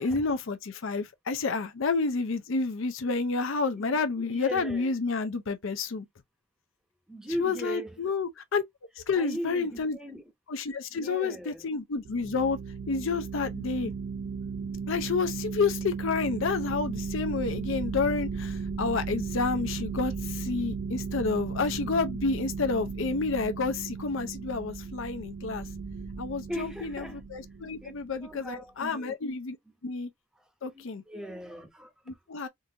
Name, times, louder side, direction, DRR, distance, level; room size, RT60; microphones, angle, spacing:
voice 1, 0.0-6.1 7.4-8.6 9.0-10.0 10.5-12.6 12.9-13.9 14.9-25.7 26.2-29.6 29.8-30.1 30.6-31.0 32.1-32.5, left 4 dB, 65° left, 0.5 m, -30 dB
voice 2, 4.3-4.9 7.1-7.9 9.2-10.2 10.9-11.6 26.5-27.2 27.8-27.9 28.2-29.1 30.7-31.9, equal, 5° right, 0.7 m, -38 dB
sound 1, 12.1-28.3, right 5 dB, 80° right, 0.6 m, -36 dB
3.7 x 2.5 x 2.8 m
head